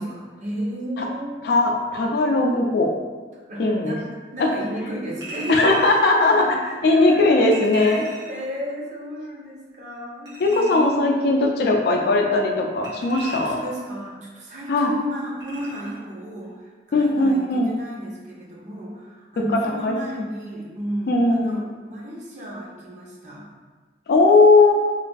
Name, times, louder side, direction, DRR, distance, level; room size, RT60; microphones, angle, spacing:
voice 1, 0.0-1.5 3.3-4.0 4.3-7.3 7.7-11.3 13.0-23.5, equal, 40° right, -4 dB, 0.6 m, -33 dB
voice 2, 1.4-2.9 3.6-3.9 5.5-6.5 6.8-8.0 10.4-13.6 14.7-14.9 16.9-17.7 19.5-19.9 21.1-21.6 24.1-24.7, left 2 dB, 60° left, 1 dB, 0.3 m, -18 dB
Chink clink, 5.2-6.0 7.5-8.4 10.3-11.0 12.8-13.8 15.4-16.0 16.4-16.5, right 2 dB, 75° right, 0.9 m, -38 dB
3.1 x 2.2 x 2.5 m, 1.4 s
head